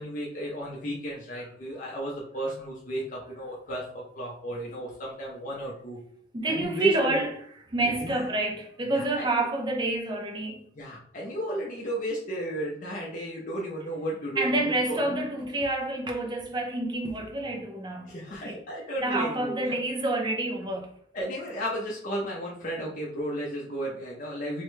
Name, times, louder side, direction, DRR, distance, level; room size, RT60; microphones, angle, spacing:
voice 1, 0.0-6.0 6.5-7.2 8.0-8.2 8.9-9.3 10.8-15.2 18.0-19.8 21.1-24.6, right 1 dB, 40° left, 0.5 m, -33 dB
voice 2, 6.3-10.6 14.4-18.6 19.0-20.9, right 2 dB, 20° right, 0.4 m, -29 dB
3.5 x 2.2 x 3.1 m
head